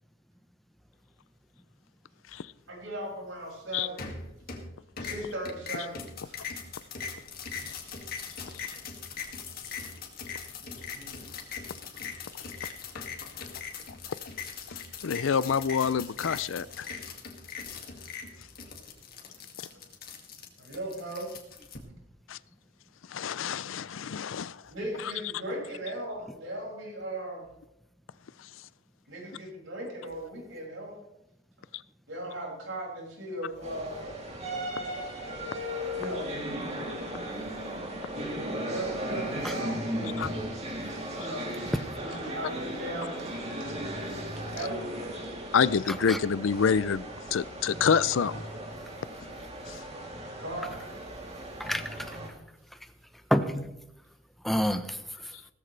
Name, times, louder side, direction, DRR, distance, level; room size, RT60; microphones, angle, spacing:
voice 1, 2.7-4.0 5.0-6.4 10.6-11.1 20.6-21.3 24.7-27.5 29.1-31.0 32.1-34.2 35.9-36.3 38.6-44.2 44.4-45.0 50.4-51.0, right 1 dB, 75° right, 6.1 m, -38 dB
sound 1, 4.0-4.7 5.0-21.8, left 6 dB, 50° left, 2.2 m, -40 dB
voice 2, 15.0-16.9 22.3-22.4 23.1-24.6 40.2-40.3 45.5-47.0 47.3-48.4 49.7-49.8, left 6 dB, 80° left, 0.5 m, -27 dB
sound 2, 33.6-52.3, equal, 35° right, 3.0 m, -36 dB
voice 3, 45.9-46.2 51.6-52.2 53.3-53.7 54.4-55.3, equal, ahead, 0.8 m, -29 dB
17.0 x 14.0 x 3.3 m
head